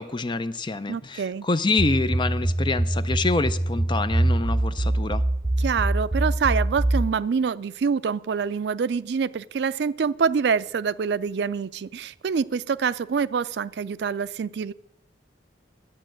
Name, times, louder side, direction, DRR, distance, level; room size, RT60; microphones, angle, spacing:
voice 1, 0.0-5.2, left 3 dB, 25° left, 13 dB, 0.5 m, -26 dB
voice 2, 0.9-1.5 5.6-14.7, right 6 dB, 65° right, 17 dB, 0.4 m, -26 dB
sound 1, 1.8-7.1, right 1 dB, 20° right, 3.4 m, -24 dB
11.5 x 8.7 x 7.6 m, 0.84 s
head